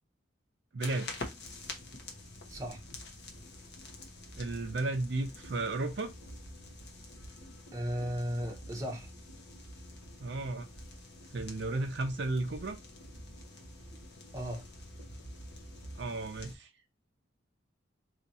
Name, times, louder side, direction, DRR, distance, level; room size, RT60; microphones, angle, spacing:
voice 1, 0.7-1.1 4.4-6.1 10.2-10.7 11.3-12.8 16.0-16.7, right 2 dB, 55° right, 0.5 m, -34 dB
sound 1, 0.8-16.6, left 1 dB, 55° left, 0.9 m, -47 dB
voice 2, 2.5-2.8 7.7-9.1 14.3-14.7, equal, 15° right, 0.8 m, -35 dB
2.8 x 2.6 x 4.1 m
head